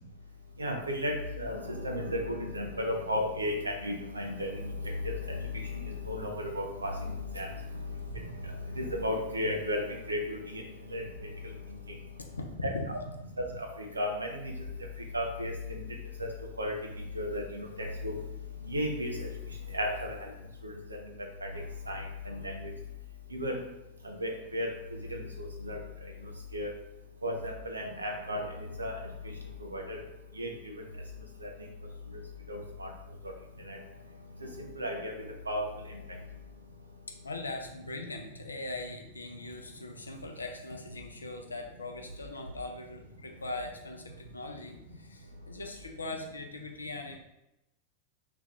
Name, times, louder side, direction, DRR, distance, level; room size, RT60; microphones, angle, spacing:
voice 1, 0.6-4.7 5.7-6.9 7.3-7.5 8.2-8.3 8.8-9.8 10.1-10.6 10.9-11.0 12.6-12.7 13.5-13.7 14.0-14.3 15.1-15.8 16.2-16.3 16.6-16.7 17.2-17.7 18.0-18.1 18.7-19.1 19.7-20.2 20.6-20.7 21.9-22.7 23.3-23.6 24.0-24.7 25.1-25.2 25.6-25.8 26.5-26.7 27.2-28.4 28.8-28.9 29.7-30.0 30.4-30.5 31.4-31.5 32.5-32.9 33.7-33.8 34.8-35.1 35.5-35.6, equal, 80° right, 1 dB, 0.5 m, -33 dB
voice 2, 12.2-12.7 37.2-47.2, left 2 dB, 80° left, 3 dB, 0.4 m, -41 dB
2.9 x 2.3 x 3.5 m, 0.89 s
figure-of-eight pair, 90°, 0 cm